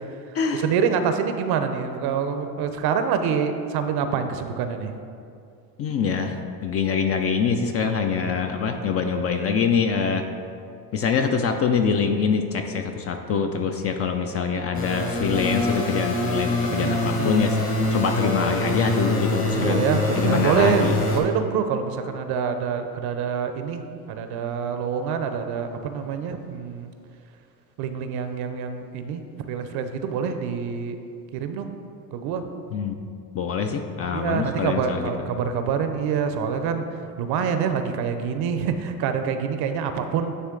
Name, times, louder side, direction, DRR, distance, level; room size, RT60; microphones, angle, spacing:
voice 1, 0.3-4.9 16.7-17.3 19.5-26.9 27.8-31.0 31.3-31.7 32.1-32.4 34.1-40.3, right 7 dB, 55° right, 8 dB, 0.6 m, -26 dB
voice 2, 5.8-6.4 6.6-10.2 10.9-17.6 17.9-19.9 20.2-20.9 32.7-33.0 33.3-35.1, left 6 dB, 35° left, 5 dB, 0.4 m, -24 dB
sound 1, 14.7-21.2, left 1 dB, 50° left, 1.5 m, -25 dB
9.4 x 3.2 x 3.8 m, 2.5 s
hypercardioid pair, 80°, 47 cm